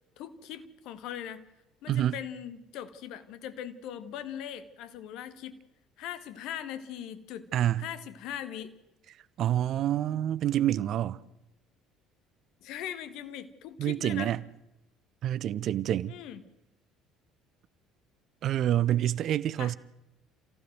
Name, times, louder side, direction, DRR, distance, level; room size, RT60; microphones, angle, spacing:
voice 1, 0.2-1.5 1.8-5.6 6.0-7.5 7.8-8.7 12.6-14.3 16.1-16.4 19.6-19.8, left 10 dB, 55° left, 1.5 m, -40 dB
voice 2, 1.9-2.2 7.5-7.8 9.4-11.2 13.8-14.4 15.2-16.1 18.4-19.8, right 12 dB, 50° right, 0.7 m, -27 dB
28.0 x 15.5 x 7.7 m
figure-of-eight pair, 55°, 0 cm